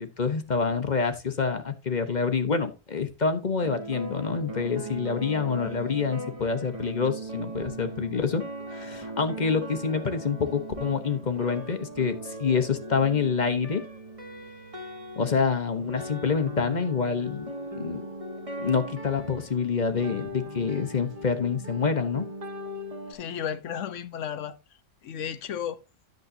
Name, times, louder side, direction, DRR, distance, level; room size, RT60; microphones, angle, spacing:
voice 1, 0.0-8.4 8.7-13.8 15.2-17.5 17.8-18.0 18.6-22.3, left 5 dB, 40° left, 0.9 m, -27 dB
sound 1, 3.6-23.1, right 1 dB, 25° right, 1.5 m, -39 dB
voice 2, 23.1-24.6 25.0-25.8, left 8 dB, 70° left, 1.1 m, -33 dB
10.5 x 7.3 x 2.7 m
omnidirectional pair, 1.3 m